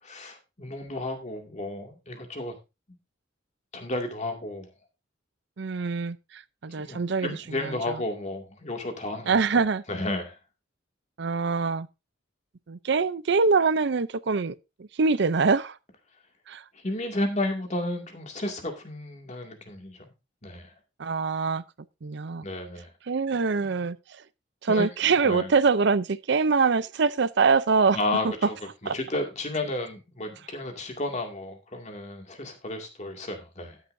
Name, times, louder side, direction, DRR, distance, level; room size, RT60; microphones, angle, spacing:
voice 1, 0.0-2.6 3.7-4.7 6.7-9.6 9.9-10.4 16.7-20.0 20.4-20.7 22.4-22.9 23.5-23.8 24.7-25.5 27.9-28.6 28.8-33.8, left 2 dB, 35° left, 2.3 m, -33 dB
voice 2, 5.6-7.3 9.3-9.8 11.2-11.9 12.7-14.5 15.0-15.8 16.5-16.6 21.0-21.6 22.0-22.5 23.1-24.0 24.6-28.0 28.9-29.0, right 4 dB, 60° right, 0.5 m, -24 dB
12.0 x 10.0 x 2.6 m
head